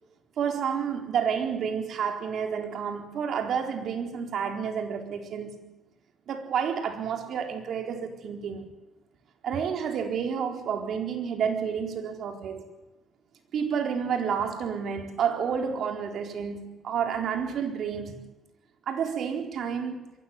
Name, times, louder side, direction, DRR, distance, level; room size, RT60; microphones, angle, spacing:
voice 1, 0.4-5.7 6.3-8.7 9.4-12.6 13.5-18.3 18.9-20.1, right 7 dB, 70° right, 4.2 m, -30 dB
22.5 x 16.5 x 7.7 m
cardioid pair, 90°, 0 cm